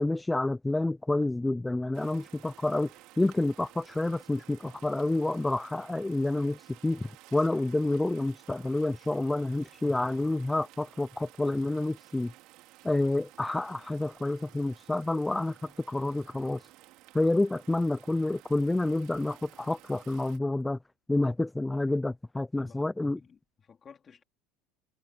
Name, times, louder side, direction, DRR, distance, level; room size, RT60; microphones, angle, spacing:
voice 1, 0.0-2.9 3.2-12.3 12.8-16.7 17.1-20.8 21.1-23.2, left 2 dB, 5° left, 0.4 m, -29 dB
sound 1, 1.9-20.4, right 18 dB, 60° right, 3.6 m, -55 dB
voice 2, 22.5-22.9 23.2-24.2, left 6 dB, 25° left, 3.6 m, -54 dB
supercardioid pair, 125°, 0 cm